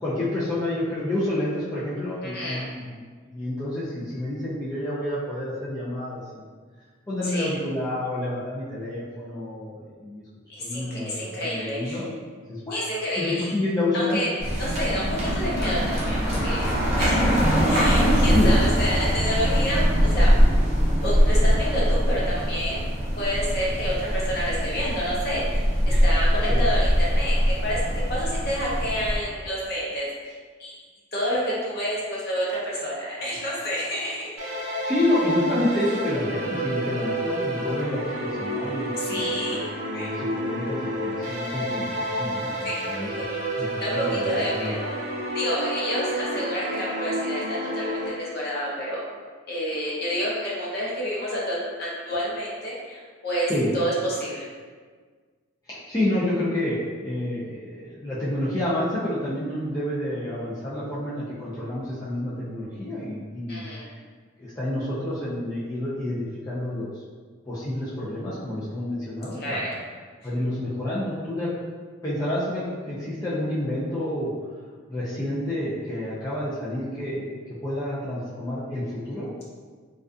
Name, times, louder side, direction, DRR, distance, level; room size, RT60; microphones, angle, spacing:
voice 1, 0.0-3.0 3.3-6.4 7.1-10.2 10.6-12.1 12.5-14.2 18.3-18.5 25.9-26.0 26.5-26.6 34.8-44.7 53.5-53.7 55.7-63.6 64.4-67.0 67.4-69.7 70.2-71.5 72.0-74.3 74.9-79.5, left 1 dB, 15° left, -10 dB, 0.3 m, -29 dB
voice 2, 2.2-2.7 7.3-7.5 10.5-12.0 12.7-13.5 13.9-14.3 14.6-16.7 17.0-17.4 17.7-20.3 21.0-27.4 27.6-27.8 28.1-30.8 31.1-34.3 39.0-39.6 39.9-40.2 42.6-43.3 43.8-44.9 45.3-49.0 49.5-54.5 63.5-63.8 69.3-69.7, equal, 50° left, -5 dB, 0.6 m, -29 dB
sound 1, 14.4-29.2, equal, 35° right, 0.6 m, -22 dB
sound 2, 34.4-48.1, right 1 dB, 85° right, 0.6 m, -30 dB
2.4 x 2.3 x 2.4 m, 1.5 s
head